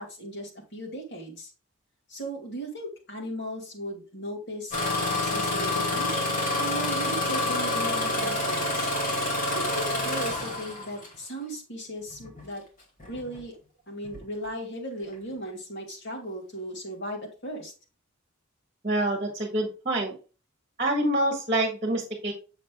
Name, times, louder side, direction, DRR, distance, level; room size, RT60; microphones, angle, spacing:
voice 1, 0.0-1.5 2.1-6.1 6.6-8.9 9.5-12.6 13.1-13.6 13.9-17.7, equal, 55° left, 0 dB, 2.3 m, -37 dB
Engine starting, 4.7-11.2 12.1-12.4 13.0-13.4 14.0-14.2, left 2 dB, 40° left, 2.2 m, -28 dB
voice 2, 18.8-20.1 20.8-22.3, right 1 dB, 30° right, 1 dB, 1.5 m, -26 dB
7.2 x 6.5 x 2.3 m, 0.33 s
head